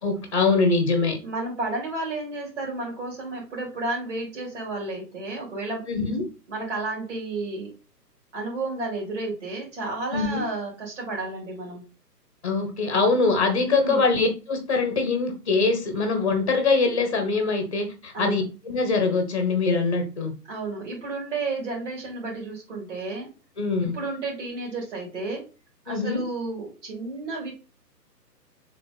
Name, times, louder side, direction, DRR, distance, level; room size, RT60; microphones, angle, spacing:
voice 1, 0.0-1.2 5.9-6.2 10.1-10.4 12.4-20.3 23.6-24.0 25.9-26.2, left 3 dB, 20° left, 0.7 m, -23 dB
voice 2, 1.2-5.8 6.5-7.7 8.3-11.8 13.7-14.1 18.1-18.4 20.5-23.3 23.8-25.4 25.8-27.5, right 2 dB, 45° right, 3.2 m, -32 dB
7.3 x 3.4 x 4.0 m
figure-of-eight pair, 140°, 50 cm